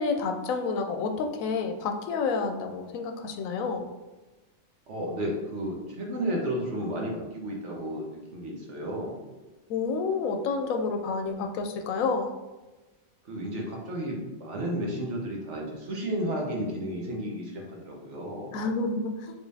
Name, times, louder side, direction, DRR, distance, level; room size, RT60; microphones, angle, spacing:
voice 1, 0.0-3.8 9.7-12.3 18.5-19.3, left 4 dB, 85° left, 5 dB, 1.0 m, -29 dB
voice 2, 4.9-8.0 8.3-9.2 13.3-18.6, equal, 65° right, -1 dB, 1.2 m, -32 dB
4.9 x 3.3 x 2.7 m, 1.1 s
omnidirectional pair, 1.4 m